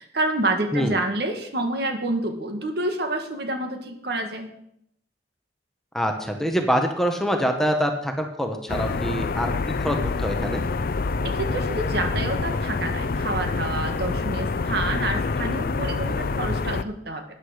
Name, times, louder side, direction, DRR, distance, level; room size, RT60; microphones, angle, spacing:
voice 1, 0.0-4.5 11.2-17.2, right 2 dB, 65° right, 5 dB, 1.7 m, -28 dB
voice 2, 5.9-10.6, equal, ahead, 4 dB, 1.2 m, -25 dB
sound 1, 8.7-16.8, left 3 dB, 55° left, 0.5 m, -26 dB
12.5 x 9.9 x 5.1 m, 0.74 s
head